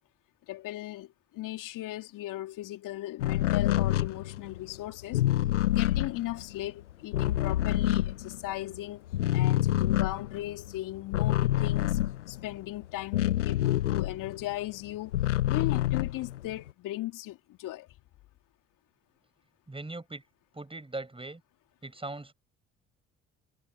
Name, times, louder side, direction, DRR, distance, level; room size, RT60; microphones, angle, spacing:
voice 1, 0.5-5.2 5.7-12.0 12.3-15.1 15.5-17.9, left 15 dB, 60° left, 2.9 m, -37 dB
sound 1, 3.2-8.8 9.1-14.5 14.9-16.7, left 13 dB, 85° left, 1.0 m, -27 dB
voice 2, 19.7-20.2 20.5-21.4 21.8-22.3, right 2 dB, 15° right, 7.2 m, -39 dB
figure-of-eight pair, 50°, 35 cm